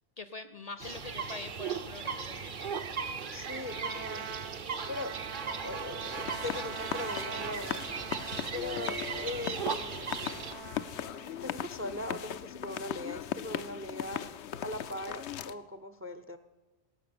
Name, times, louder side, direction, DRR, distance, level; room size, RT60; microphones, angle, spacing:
voice 1, 0.2-2.6, left 3 dB, 45° left, 12 dB, 0.6 m, -44 dB
sound 1, 0.8-10.5, right 6 dB, 50° right, 0.9 m, -37 dB
voice 2, 3.3-4.4 4.9-5.2 5.6-7.8 8.5-10.4 11.3-14.3 14.6-16.4, left 2 dB, 20° right, 11 dB, 0.4 m, -40 dB
Trumpet, 3.4-11.5, right 8 dB, 90° right, 1.1 m, -45 dB
sound 2, 6.0-15.5, left 10 dB, 85° left, 0.9 m, -39 dB
17.5 x 5.9 x 8.6 m, 1.1 s
omnidirectional pair, 1.1 m